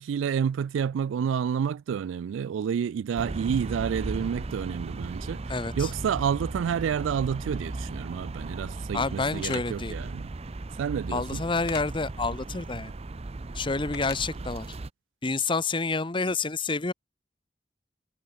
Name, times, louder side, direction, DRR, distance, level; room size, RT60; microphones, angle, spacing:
voice 1, 0.0-5.4 5.8-10.3 10.8-11.4, right 7 dB, 90° right, 0.3 m, -29 dB
sound 1, 3.2-14.9, right 2 dB, 35° right, 0.6 m, -36 dB
voice 2, 5.5-5.9 8.9-10.0 11.1-12.9 13.5-14.7 15.2-16.9, left 3 dB, 25° left, 0.9 m, -28 dB
sound 2, 9.4-9.6 11.7-11.9 13.9-14.2, left 7 dB, 55° left, 2.4 m, -39 dB
head